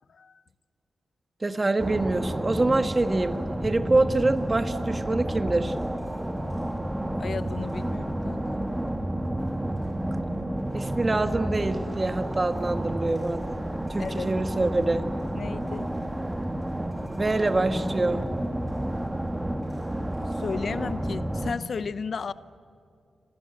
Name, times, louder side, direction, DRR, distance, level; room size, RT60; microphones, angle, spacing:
voice 1, 1.4-3.4 3.6-5.7 10.7-13.6 13.9-15.1 17.1-18.2, right 2 dB, 25° right, 9 dB, 1.4 m, -25 dB
sound 1, 1.8-21.5, right 1 dB, 10° right, 1.6 m, -31 dB
voice 2, 7.2-8.6 14.0-14.3 15.3-15.9 20.4-22.3, left 5 dB, 55° left, 15 dB, 0.7 m, -33 dB
28.0 x 27.0 x 8.0 m, 2.3 s
wide cardioid pair, 110°, 0 cm